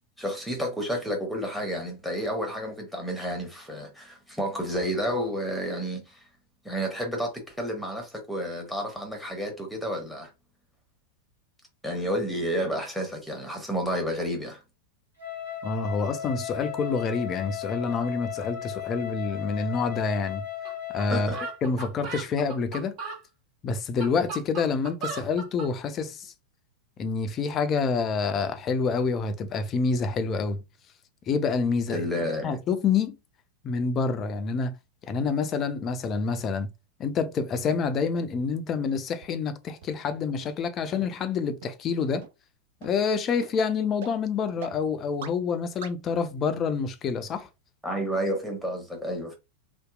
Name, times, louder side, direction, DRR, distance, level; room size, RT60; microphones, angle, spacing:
voice 1, 0.2-6.2 6.6-10.3 11.8-14.6 21.1-21.4 31.9-32.6 47.8-49.3, equal, ahead, 0.9 m, -30 dB
Wind instrument woodwind instrument, 15.2-21.6, left 11 dB, 85° right, 1.2 m, -36 dB
voice 2, 15.6-20.4 20.9-21.3 21.6-22.9 23.6-26.3 27.0-30.6 31.3-32.0 32.4-33.2 33.6-34.7 35.1-36.7 37.0-42.2 42.8-47.5, left 5 dB, 30° left, 0.4 m, -27 dB
sound 1, 20.6-20.7 21.0-21.1 21.3-23.2 23.8-25.7, right 4 dB, 40° right, 0.8 m, -36 dB
sound 2, 39.2-39.3 39.8-39.9 40.4-40.5 41.0-41.1 41.6-41.7 42.2-42.3 42.8-42.9 43.4-43.5 44.0-44.1 44.6-44.7 45.2-45.3 45.8-45.9, right 7 dB, 55° right, 0.4 m, -40 dB
2.7 x 2.1 x 2.3 m
figure-of-eight pair, 90°, 0 cm